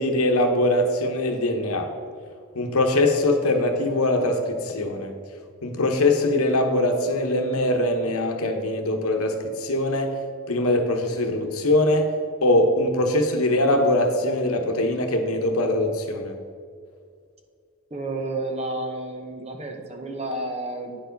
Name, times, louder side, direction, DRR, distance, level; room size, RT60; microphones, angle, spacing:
voice 1, 0.0-1.9 2.5-5.1 5.6-10.1 10.5-12.1 12.4-16.4, left 1 dB, 80° left, 5 dB, 0.9 m, -22 dB
voice 2, 17.9-21.0, right 2 dB, 30° right, 3 dB, 0.8 m, -31 dB
9.6 x 4.7 x 5.2 m, 2.1 s
head